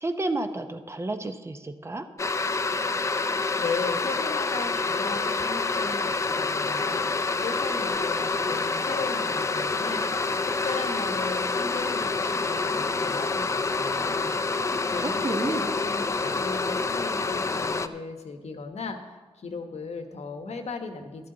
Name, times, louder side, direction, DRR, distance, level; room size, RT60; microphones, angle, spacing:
voice 1, 0.0-2.1 15.0-15.7, right 2 dB, 25° right, 7 dB, 0.6 m, -31 dB
sound 1, 2.2-17.9, left 3 dB, 25° left, 0.4 m, -27 dB
voice 2, 3.1-10.0 10.6-21.3, left 4 dB, 75° left, 6 dB, 1.1 m, -37 dB
12.5 x 12.0 x 3.8 m, 1.3 s
wide cardioid pair, 175°, 11 cm